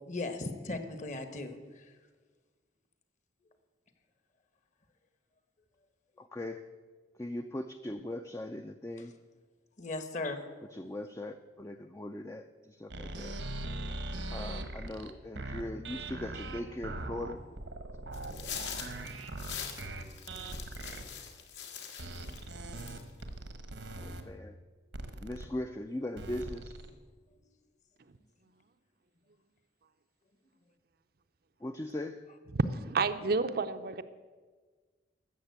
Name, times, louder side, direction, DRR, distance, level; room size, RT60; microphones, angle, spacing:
voice 1, 0.1-1.6 9.8-10.4, left 2 dB, 40° left, 8 dB, 1.1 m, -37 dB
voice 2, 6.2-6.8 7.2-9.1 10.7-13.4 14.3-17.4 24.0-24.6 25.2-26.8 31.6-32.3, left 1 dB, 15° left, 7 dB, 0.4 m, -40 dB
sound 1, 12.9-21.0 22.0-24.2 24.9-25.5 26.2-26.9, right 2 dB, 80° right, 1.2 m, -40 dB
sound 2, 18.1-22.4 22.7-23.2, left 8 dB, 70° left, 1.6 m, -43 dB
voice 3, 32.5-34.0, right 4 dB, 55° right, 10 dB, 0.6 m, -30 dB
13.0 x 7.5 x 8.1 m, 1.4 s
head